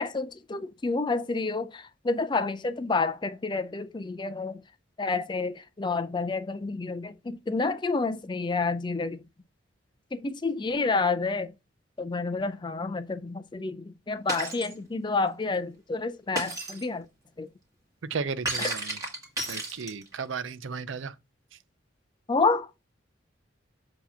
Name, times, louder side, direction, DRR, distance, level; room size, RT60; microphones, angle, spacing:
voice 1, 0.0-4.6 5.0-9.2 10.1-11.5 12.0-17.1 17.4-17.5 18.6-18.7 22.3-22.7, left 3 dB, 25° left, 0.4 m, -29 dB
Shatter, 14.3-14.7 16.4-16.8 18.5-20.2, right 2 dB, 20° right, 1.9 m, -32 dB
voice 2, 18.1-19.0 19.5-21.1, right 5 dB, 80° right, 0.5 m, -34 dB
7.1 x 2.9 x 5.5 m
head